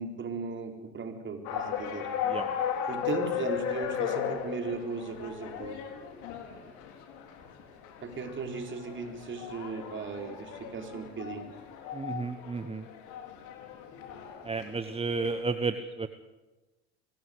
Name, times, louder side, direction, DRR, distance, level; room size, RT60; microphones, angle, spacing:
voice 1, 0.0-2.1 2.9-5.8 8.0-11.5, right 4 dB, 35° right, 4 dB, 4.4 m, -37 dB
sound 1, 1.5-15.4, left 8 dB, 65° left, 4.0 m, -36 dB
voice 2, 11.9-12.8 14.4-16.1, right 4 dB, 20° right, 10 dB, 1.1 m, -32 dB
24.0 x 15.5 x 8.2 m, 1.1 s
hypercardioid pair, 70°, 33 cm